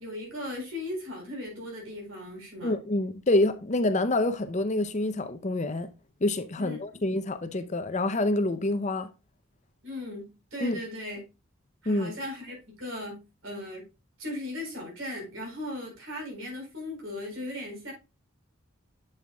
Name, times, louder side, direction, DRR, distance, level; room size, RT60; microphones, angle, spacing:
voice 1, 0.0-2.7 6.6-6.8 9.8-11.2 11.8-13.8 14.2-17.9, left 1 dB, 65° right, 4.4 m, -37 dB
voice 2, 2.6-5.9 6.2-9.1 10.6-10.8 11.9-12.1, left 2 dB, 35° left, 0.5 m, -27 dB
7.8 x 7.1 x 2.3 m
head